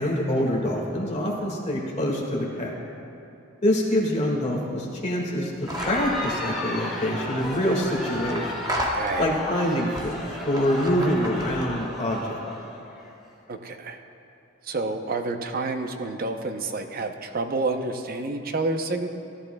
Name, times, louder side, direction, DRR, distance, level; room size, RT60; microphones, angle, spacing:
voice 1, 0.0-2.8 3.6-5.5 5.9-8.5 9.2-12.4, equal, 35° left, -2 dB, 1.9 m, -25 dB
Crowd, 5.6-13.1, left 1 dB, ahead, 1.9 m, -34 dB
sound 1, 5.7-6.1 7.2-9.4 9.9-11.9, right 1 dB, 20° right, 0.8 m, -34 dB
voice 2, 8.9-9.4 13.5-14.0 14.6-19.1, right 3 dB, 45° right, 6 dB, 0.6 m, -29 dB
16.5 x 11.5 x 2.3 m, 2.8 s
head